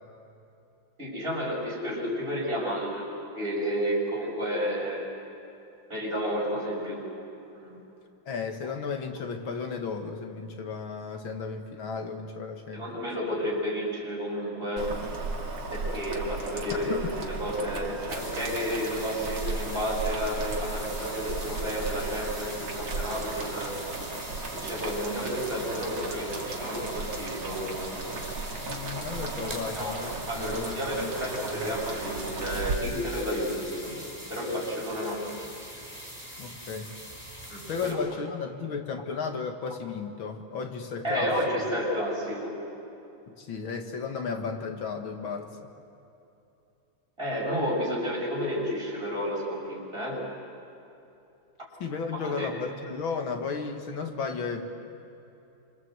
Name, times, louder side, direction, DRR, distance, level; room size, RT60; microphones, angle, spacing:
voice 1, 1.0-3.1 3.3-5.1 5.9-7.0 7.5-7.8 12.7-14.9 15.7-23.8 24.5-28.0 29.7-34.0 34.3-35.2 37.5-38.0 41.0-42.5 47.2-50.2 52.1-52.5, equal, 25° right, -3 dB, 7.3 m, -31 dB
voice 2, 8.3-13.0 16.7-17.1 28.7-31.1 31.5-31.7 36.4-36.9 37.7-41.3 43.3-45.7 51.8-54.7, left 5 dB, 75° left, 4 dB, 2.6 m, -34 dB
Boiling, 14.8-32.7, right 3 dB, 85° right, 3.2 m, -35 dB
sound 1, 18.1-37.9, equal, 5° left, 5.3 m, -42 dB
27.0 x 26.5 x 8.1 m, 2.8 s
omnidirectional pair, 2.2 m